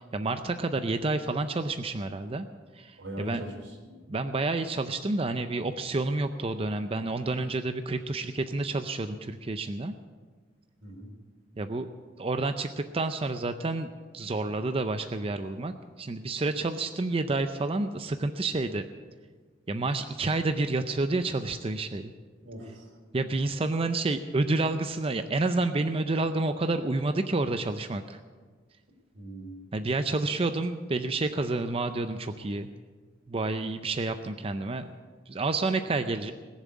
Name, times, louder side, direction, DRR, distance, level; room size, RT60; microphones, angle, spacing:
voice 1, 0.0-2.5 2.7-3.4 4.1-9.9 11.6-11.9 12.2-18.9 19.7-22.1 23.1-28.2 29.7-32.7 33.3-34.9 35.3-36.3, right 2 dB, 30° right, 9 dB, 0.5 m, -29 dB
voice 2, 3.0-4.0 10.8-11.1 22.4-22.9 29.1-29.6, right 1 dB, 85° right, 1 dB, 3.8 m, -41 dB
19.5 x 7.4 x 8.4 m, 1.5 s
head